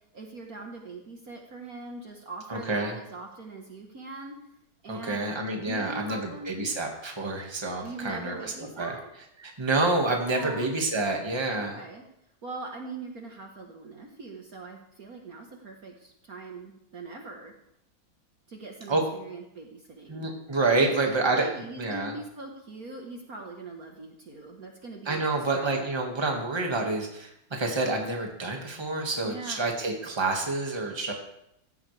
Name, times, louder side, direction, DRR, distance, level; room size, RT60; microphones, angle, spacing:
voice 1, 0.1-4.4 4.8-6.7 7.8-9.0 10.3-10.7 11.6-12.0 12.4-17.5 18.5-20.3 20.8-20.9 21.3-25.8 29.2-29.7, right 2 dB, 50° right, 1 dB, 1.8 m, -41 dB
voice 2, 2.5-2.9 4.9-8.9 9.4-11.8 18.9-19.0 20.1-21.5 21.8-22.1 25.1-31.1, right 2 dB, 15° right, 1 dB, 1.8 m, -28 dB
16.0 x 13.5 x 3.4 m, 0.79 s
omnidirectional pair, 2.2 m